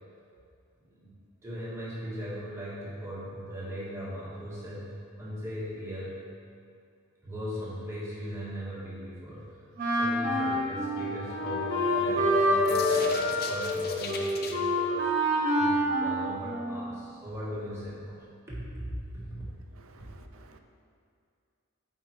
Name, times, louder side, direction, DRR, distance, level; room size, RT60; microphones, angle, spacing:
voice 1, 0.8-1.2 1.4-6.2 7.2-9.4 9.9-15.1 15.6-18.2 18.5-19.5, equal, 15° right, -8 dB, 1.3 m, -39 dB
Wind instrument woodwind instrument, 9.8-17.0, equal, 40° right, 1.2 m, -27 dB
Piano, 10.5-12.9, left 1 dB, 80° left, 0.8 m, -43 dB
sound 1, 11.3-14.6, left 3 dB, 45° left, 0.5 m, -33 dB
voice 2, 19.8-20.6, right 3 dB, 65° right, 5 dB, 0.5 m, -55 dB
8.4 x 4.5 x 3.1 m, 2.4 s
head